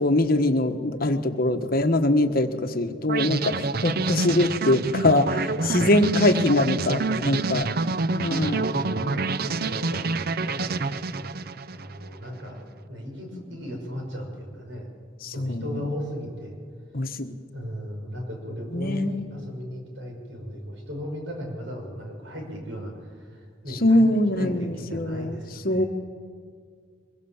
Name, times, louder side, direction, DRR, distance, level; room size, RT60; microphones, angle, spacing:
voice 1, 0.0-7.0 7.2-7.7 8.2-8.6 15.2-15.8 16.9-17.3 18.7-19.2 23.8-25.4 25.6-25.8, left 1 dB, 50° left, 7 dB, 1.4 m, -23 dB
sound 1, 3.1-12.1, right 3 dB, 55° right, 0.6 m, -27 dB
voice 2, 5.5-7.6 8.3-11.3 11.7-14.9 15.3-16.6 17.5-24.1 24.4-25.9, equal, 85° right, 2 dB, 5.8 m, -36 dB
23.0 x 22.0 x 7.3 m, 2.1 s
head